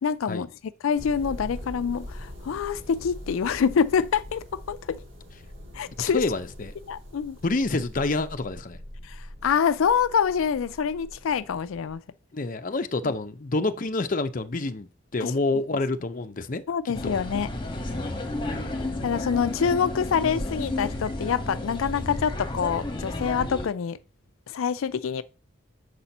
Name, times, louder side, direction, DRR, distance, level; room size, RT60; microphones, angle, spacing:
voice 1, 0.0-0.5 0.8-5.0 5.7-6.2 6.9-7.4 9.0-12.0 13.0-13.1 15.2-15.3 16.7-17.5 18.5-18.6 19.0-24.0 24.5-25.2, left 7 dB, 90° left, 0.4 m, -26 dB
sound 1, 1.0-11.9, left 1 dB, 75° right, 3.6 m, -43 dB
voice 2, 6.1-6.7 7.4-8.8 12.3-17.1, left 3 dB, 40° left, 0.6 m, -28 dB
sound 2, 16.9-23.7, left 1 dB, 25° left, 1.2 m, -32 dB
6.7 x 4.3 x 5.3 m
head